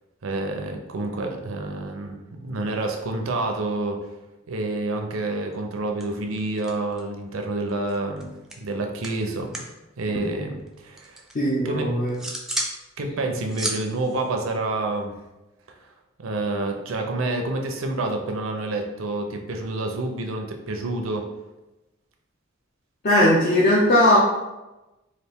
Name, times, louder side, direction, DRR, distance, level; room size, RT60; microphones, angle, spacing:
voice 1, 0.2-4.1 4.5-8.3 8.6-9.6 10.0-11.2 11.6-11.9 13.0-15.1 15.7-15.9 16.2-21.3, right 2 dB, 75° right, 3 dB, 0.6 m, -28 dB
sound 1, 5.5-5.7 6.0-7.2 7.5-9.8 10.0-11.4 11.8-12.8 13.1-15.2, right 1 dB, ahead, 0.4 m, -34 dB
voice 2, 11.3-12.2 23.0-24.2, left 1 dB, 45° left, -5 dB, 0.6 m, -18 dB
4.0 x 2.5 x 3.5 m, 1.0 s
head